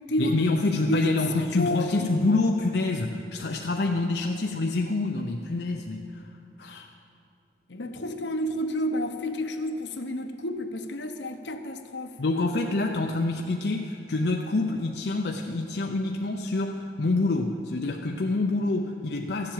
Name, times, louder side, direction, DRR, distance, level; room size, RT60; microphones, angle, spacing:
voice 1, 0.2-6.3 6.6-6.9 12.2-19.5, left 2 dB, 65° left, 2 dB, 0.6 m, -27 dB
voice 2, 0.9-2.2 7.7-12.1, equal, 80° left, 6 dB, 1.0 m, -30 dB
14.0 x 7.5 x 8.9 m, 2.5 s
head